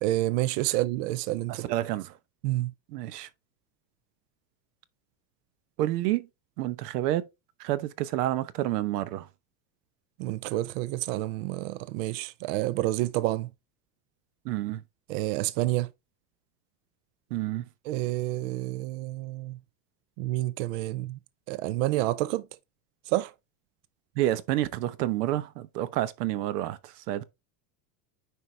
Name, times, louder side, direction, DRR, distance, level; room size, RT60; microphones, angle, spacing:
voice 1, 0.0-1.7 2.4-2.7 10.2-13.5 15.1-15.9 17.9-19.6 20.2-21.2 21.5-22.5 23.1-23.3, right 16 dB, 55° right, 0.5 m, -29 dB
voice 2, 1.5-2.1 2.9-3.3 5.8-6.3 6.6-7.2 7.6-9.3 14.4-14.8 17.3-17.6 24.2-26.8 27.1-27.2, right 14 dB, 85° right, 1.0 m, -29 dB
9.4 x 4.8 x 3.3 m
supercardioid pair, 170°, 46 cm